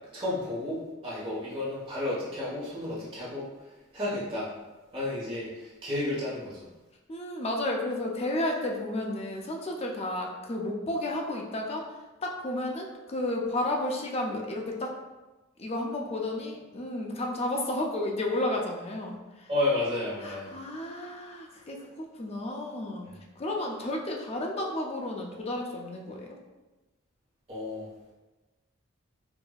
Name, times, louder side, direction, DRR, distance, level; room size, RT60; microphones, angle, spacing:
voice 1, 0.1-3.5 3.9-4.5 4.9-6.6 19.5-20.5 27.5-28.1, left 2 dB, 25° right, -8 dB, 1.1 m, -32 dB
voice 2, 7.1-14.9 15.6-19.5 20.2-23.1 23.4-26.4, left 1 dB, 30° left, 0 dB, 0.4 m, -32 dB
4.7 x 2.6 x 2.3 m, 1.1 s
head